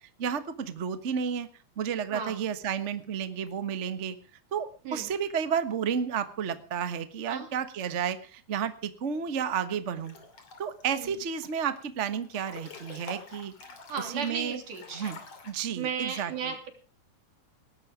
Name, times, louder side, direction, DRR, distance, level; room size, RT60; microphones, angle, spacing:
voice 1, 0.2-1.5 1.8-4.2 4.5-10.2 10.6-13.5 14.0-14.6 14.9-15.2 15.4-16.5, right 7 dB, 50° right, 11 dB, 0.8 m, -31 dB
voice 2, 2.1-2.4 4.8-5.1 7.3-7.5 10.9-11.2 13.9-15.0 15.8-16.7, right 6 dB, 85° right, 5 dB, 4.7 m, -35 dB
Breathing / Bathtub (filling or washing) / Splash splatter, 10.0-10.8 11.2-11.8 12.2-15.5, left 3 dB, 50° left, 3.7 m, -46 dB
19.5 x 12.0 x 5.0 m, 0.39 s
omnidirectional pair, 3.5 m